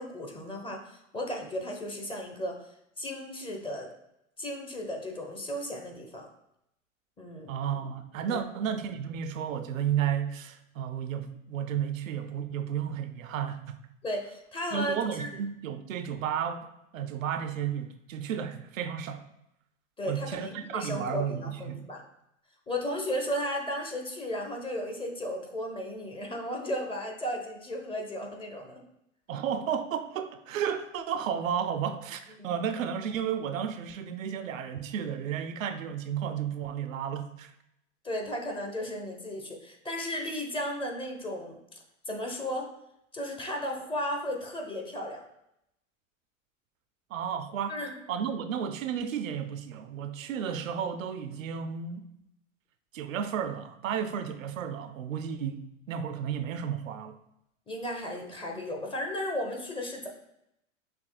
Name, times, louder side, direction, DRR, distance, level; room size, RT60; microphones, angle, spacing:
voice 1, 0.0-2.6 3.0-3.9 4.4-6.3 7.2-7.5 8.3-8.4 14.0-15.3 20.0-22.0 22.7-28.8 32.4-32.5 38.0-41.8 42.1-42.7 43.1-45.2 47.7-47.9 57.7-60.1, equal, 15° left, 1 dB, 0.6 m, -35 dB
voice 2, 7.5-13.6 14.7-19.2 20.1-21.8 29.3-37.5 47.1-47.8 48.1-52.0 52.9-57.2, right 8 dB, 80° right, 9 dB, 0.5 m, -33 dB
6.0 x 2.8 x 2.2 m, 0.79 s
hypercardioid pair, 95°, 39 cm